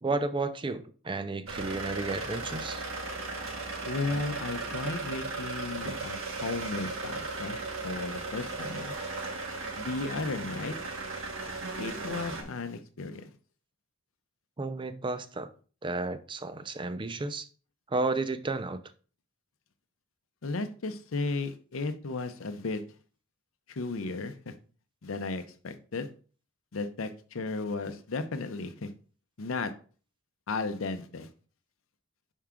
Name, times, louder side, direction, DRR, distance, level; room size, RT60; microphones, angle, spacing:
voice 1, 0.0-2.8 14.6-15.5 15.8-17.5 17.9-18.8, right 3 dB, 25° right, 0.5 m, -32 dB
sound 1, 1.5-12.4, right 3 dB, 85° right, 1.4 m, -36 dB
voice 2, 3.8-9.0 9.8-10.8 11.8-13.3 20.4-22.8 23.7-24.5 25.0-26.1 26.7-28.9 29.4-29.7 30.5-31.3, left 3 dB, 80° left, 0.6 m, -34 dB
5.8 x 4.6 x 3.6 m
head